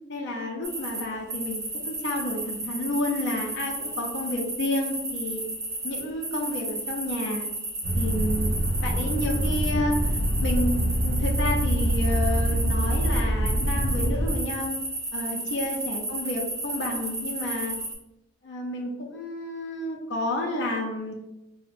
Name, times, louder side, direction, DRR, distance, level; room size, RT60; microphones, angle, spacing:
voice 1, 0.1-5.4 5.8-7.4 7.9-8.5 8.8-14.8 15.1-17.8 18.4-21.1, left 1 dB, 60° left, -1 dB, 0.5 m, -30 dB
sound 1, 0.6-1.0 1.3-17.9, right 2 dB, 15° right, 0.5 m, -33 dB
sound 2, 7.8-14.3, equal, 60° right, 0.5 m, -25 dB
4.2 x 2.1 x 2.5 m, 0.94 s
head